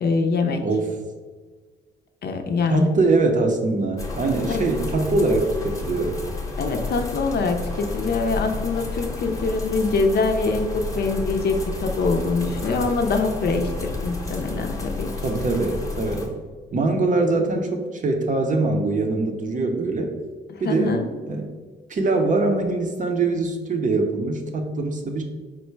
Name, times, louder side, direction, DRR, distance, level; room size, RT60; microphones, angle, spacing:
voice 1, 0.0-0.7 2.2-3.0 4.5-4.7 6.6-15.1 20.5-21.1, left 3 dB, 55° left, 5 dB, 0.5 m, -24 dB
voice 2, 2.7-6.1 15.2-16.3 16.7-20.1 20.6-21.0 21.3-21.5 21.9-25.2, right 3 dB, 40° right, 4 dB, 0.6 m, -23 dB
sound 1, 4.0-16.3, left 3 dB, 15° left, 0.8 m, -31 dB
4.5 x 2.1 x 4.4 m, 1.5 s
cardioid pair, 90°, 20 cm